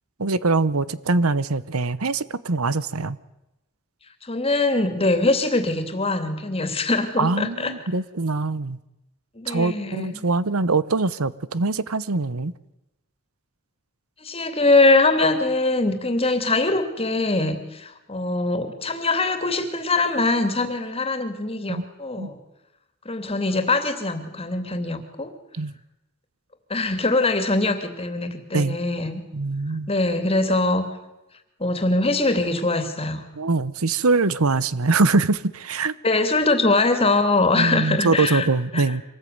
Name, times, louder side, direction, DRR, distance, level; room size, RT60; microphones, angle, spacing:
voice 1, 0.2-3.2 7.2-8.8 9.5-12.5 21.7-21.8 22.2-22.3 25.5-25.7 28.5-28.8 29.3-29.9 33.3-36.0 37.5-39.0, right 3 dB, 90° right, 1.0 m, -23 dB
voice 2, 4.2-7.7 9.3-10.2 14.2-22.4 23.0-25.3 26.7-29.2 29.9-30.9 31.6-33.2 36.0-38.5 38.7-38.8, left 2 dB, 30° left, 2.9 m, -22 dB
26.0 x 19.5 x 9.5 m
head